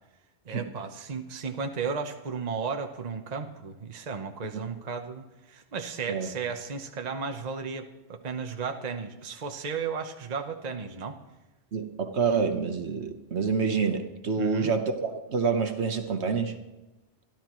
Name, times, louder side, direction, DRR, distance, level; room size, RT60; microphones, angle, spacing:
voice 1, 0.5-11.2 14.4-14.7, right 5 dB, 40° right, 5 dB, 0.9 m, -34 dB
voice 2, 11.7-16.5, right 5 dB, 65° right, 5 dB, 1.4 m, -27 dB
26.5 x 12.0 x 3.1 m, 1.0 s
omnidirectional pair, 1.2 m